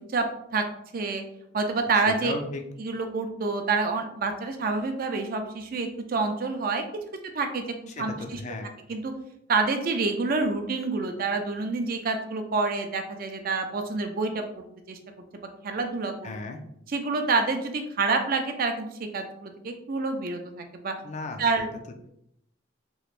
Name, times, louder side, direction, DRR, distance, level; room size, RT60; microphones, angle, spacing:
voice 1, 1.5-2.3 2.8-6.8 7.3-7.6 8.0-8.4 8.9-9.1 9.5-15.0 15.6-16.1 16.9-20.9 21.4-21.7, right 3 dB, 50° right, 5 dB, 0.4 m, -27 dB
voice 2, 2.1-2.6 7.9-8.7 16.2-16.6 21.0-21.7, left 3 dB, 40° left, 5 dB, 0.4 m, -36 dB
3.3 x 3.0 x 2.4 m, 0.74 s
head